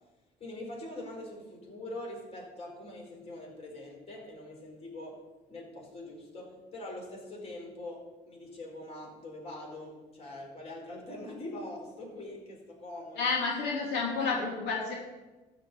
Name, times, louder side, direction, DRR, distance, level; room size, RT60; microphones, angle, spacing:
voice 1, 0.4-5.2 5.5-13.3, left 1 dB, 35° left, -2 dB, 4.5 m, -43 dB
voice 2, 13.2-14.9, left 4 dB, 85° left, -3 dB, 2.8 m, -30 dB
12.5 x 5.1 x 9.0 m, 1.2 s
cardioid pair, 110°, 17 cm